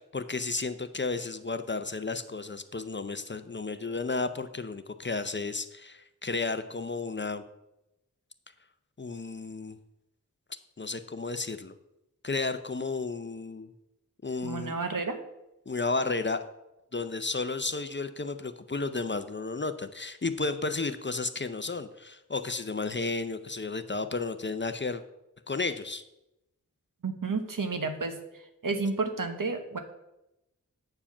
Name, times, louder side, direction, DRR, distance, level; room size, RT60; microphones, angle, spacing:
voice 1, 0.0-7.4 9.0-9.8 10.8-11.7 12.2-13.7 14.2-14.7 15.7-16.4 16.9-25.0 25.5-26.1, left 3 dB, 35° left, 10 dB, 0.6 m, -33 dB
voice 2, 14.4-15.2 27.0-28.2 28.6-29.8, right 4 dB, 70° right, 6 dB, 1.1 m, -31 dB
8.7 x 4.7 x 7.1 m, 0.89 s
wide cardioid pair, 55°, 34 cm